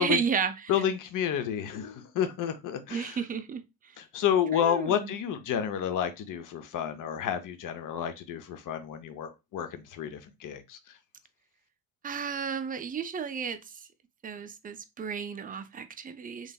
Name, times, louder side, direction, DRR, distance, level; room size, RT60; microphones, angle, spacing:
voice 1, 0.0-0.7 2.9-3.6 4.5-5.1 12.0-13.6 14.2-16.5, right 6 dB, 25° right, 0.4 m, -32 dB
voice 2, 0.7-3.2 4.0-10.8, left 9 dB, 55° left, 0.6 m, -30 dB
3.1 x 2.6 x 2.2 m
supercardioid pair, 65°, 38 cm